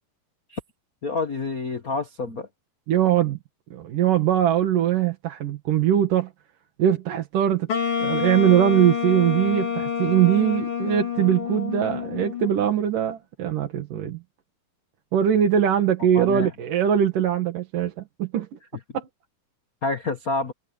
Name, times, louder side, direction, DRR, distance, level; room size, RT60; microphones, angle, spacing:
voice 1, 1.0-2.5 16.1-16.5 19.8-20.5, left 3 dB, 70° left, 0.8 m, -28 dB
voice 2, 2.9-3.4 3.7-6.3 6.8-7.7 8.0-14.2 15.1-18.5 18.9-19.1, right 10 dB, 70° right, 3.4 m, -21 dB
Wind instrument woodwind instrument, 7.7-12.7, left 7 dB, 40° left, 2.8 m, -28 dB
omnidirectional pair, 4.0 m